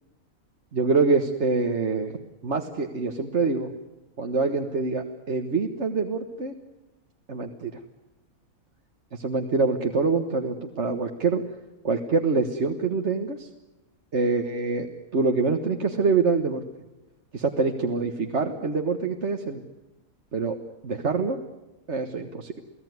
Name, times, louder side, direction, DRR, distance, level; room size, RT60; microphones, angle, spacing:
voice 1, 0.7-2.1 2.4-3.7 4.2-6.5 7.3-7.7 9.1-11.4 11.8-13.5 14.1-14.9 15.1-16.6 17.3-19.6 20.3-20.6 20.8-21.4 21.9-22.6, right 4 dB, 50° right, 4 dB, 1.7 m, -25 dB
30.0 x 17.5 x 9.5 m, 1.0 s
omnidirectional pair, 1.5 m